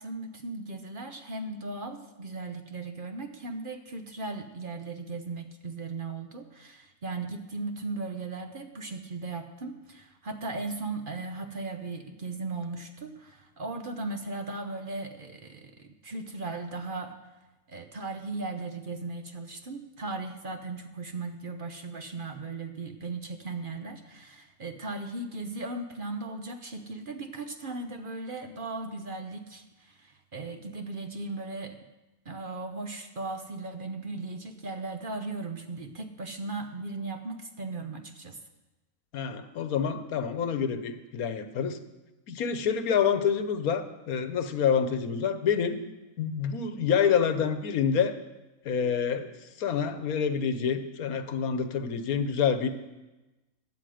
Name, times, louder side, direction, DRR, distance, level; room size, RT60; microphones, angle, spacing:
voice 1, 0.0-17.3 17.7-31.8 32.3-38.4, right 3 dB, 45° right, 6 dB, 0.9 m, -37 dB
voice 2, 39.1-41.8 42.3-45.8 46.2-48.2 48.6-49.3 49.6-52.7, left 7 dB, 80° left, 10 dB, 1.4 m, -27 dB
15.5 x 10.0 x 5.0 m, 1.1 s
omnidirectional pair, 1.5 m